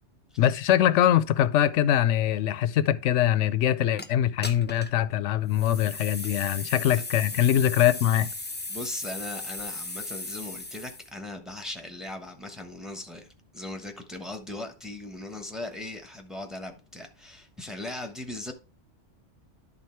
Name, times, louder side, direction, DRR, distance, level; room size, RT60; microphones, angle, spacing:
voice 1, 0.4-8.3, left 11 dB, 85° left, 0.9 m, -23 dB
sound 1, 4.0-4.1 4.4-5.0 5.5-11.1, left 2 dB, 15° left, 0.3 m, -37 dB
voice 2, 8.7-13.3 13.5-18.5, left 2 dB, ahead, 1.0 m, -38 dB
11.0 x 3.8 x 4.5 m
omnidirectional pair, 1.2 m